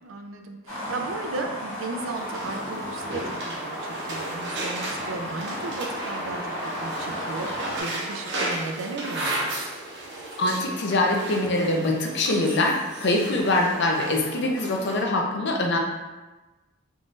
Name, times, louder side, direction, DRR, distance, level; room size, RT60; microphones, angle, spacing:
voice 1, 0.0-9.5, right 3 dB, 80° right, 5 dB, 0.4 m, -35 dB
sound 1, 0.7-7.8, equal, 85° left, 1.4 m, -34 dB
sound 2, 2.1-15.0, right 1 dB, 60° right, 0.8 m, -34 dB
voice 2, 10.4-15.8, left 2 dB, 60° left, 1 dB, 0.5 m, -23 dB
3.7 x 3.1 x 2.5 m, 1.2 s
head